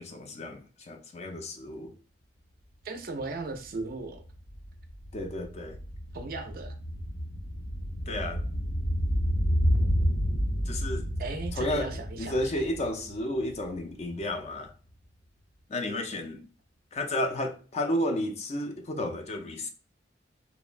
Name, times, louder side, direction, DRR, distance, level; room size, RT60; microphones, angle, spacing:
voice 1, 0.0-1.9 5.1-5.8 8.1-8.4 10.7-11.1 11.6-11.9 12.2-14.7 15.7-16.4 16.9-19.7, left 1 dB, 35° left, 0.4 m, -32 dB
voice 2, 2.8-4.2 6.1-6.7 11.2-12.6, right 3 dB, 55° right, 0.4 m, -37 dB
sound 1, 3.2-3.3 3.5-13.9 14.2-14.3, equal, 85° left, 0.6 m, -30 dB
2.9 x 2.1 x 2.4 m
head